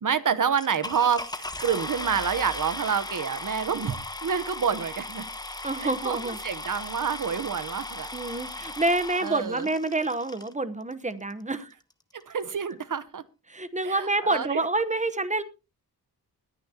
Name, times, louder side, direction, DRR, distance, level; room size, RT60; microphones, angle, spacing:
voice 1, 0.0-5.3 5.8-8.1 9.2-9.7 12.3-13.2 13.8-14.6, right 7 dB, 55° right, 14 dB, 1.0 m, -28 dB
sound 1, 0.6-10.5 11.3-11.4 11.9-12.0 12.2-12.5, left 2 dB, 10° left, 1.0 m, -37 dB
voice 2, 5.6-6.4 8.1-11.7 13.5-15.4, right 2 dB, 20° right, 12 dB, 1.0 m, -27 dB
20.5 x 9.8 x 2.9 m, 0.29 s
wide cardioid pair, 120°, 38 cm